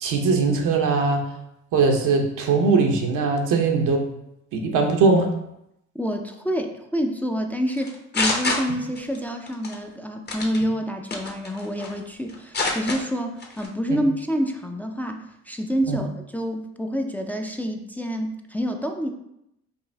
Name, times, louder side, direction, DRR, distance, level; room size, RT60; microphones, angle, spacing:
voice 1, 0.0-1.3 1.7-4.0 4.5-5.3 13.9-14.0 15.9-16.0, right 4 dB, 85° right, 3 dB, 0.8 m, -20 dB
voice 2, 6.0-16.1 16.3-19.1, equal, 5° left, 3 dB, 0.4 m, -27 dB
sound 1, 7.8-9.2 9.5-9.8 10.3-10.6 11.1-12.0 12.3-13.0 13.4-13.7, left 3 dB, 35° left, 0.8 m, -26 dB
5.4 x 2.6 x 3.3 m, 0.80 s
cardioid pair, 90°, 30 cm